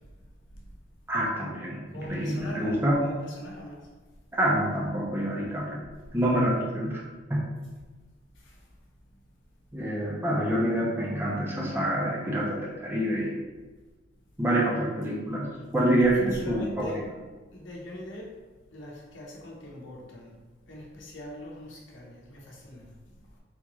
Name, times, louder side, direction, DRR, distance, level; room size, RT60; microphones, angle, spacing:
voice 1, 1.1-3.0 4.3-5.8 6.1-7.0 7.3-7.5 9.7-13.4 14.4-16.9, right 1 dB, 10° right, -4 dB, 0.6 m, -27 dB
voice 2, 1.9-3.9 8.4-8.6 16.2-17.0 17.5-18.4 18.7-20.4 20.7-22.9, left 1 dB, 85° left, -2 dB, 0.8 m, -41 dB
3.5 x 2.6 x 3.0 m, 1.3 s
head